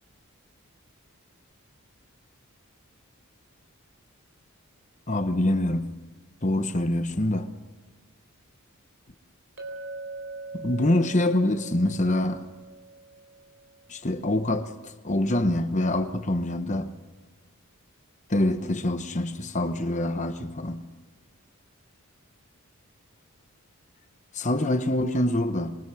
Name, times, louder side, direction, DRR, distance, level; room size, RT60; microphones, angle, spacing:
voice 1, 5.1-5.9 6.4-7.5 10.5-12.4 13.9-16.9 18.3-20.8 24.3-25.9, left 1 dB, 30° left, 1.0 m, -25 dB
Chink clink, 9.6-14.0, right 3 dB, 55° right, 4.3 m, -42 dB
26.5 x 23.5 x 6.2 m
head